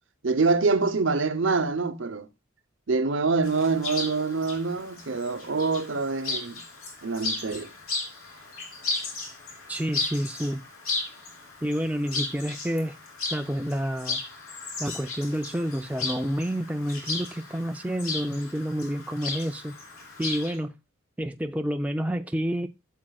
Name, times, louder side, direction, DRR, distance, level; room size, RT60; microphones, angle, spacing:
voice 1, 0.2-2.3 2.9-6.6 7.0-7.7, right 4 dB, 60° right, 0.8 m, -25 dB
Chirp tweet, 3.4-20.5, left 3 dB, 85° left, 3.3 m, -35 dB
voice 2, 9.7-10.6 11.6-13.0 13.3-14.2 14.8-19.7 20.2-20.8 21.2-22.7, equal, 5° right, 0.4 m, -29 dB
13.0 x 7.4 x 2.3 m
head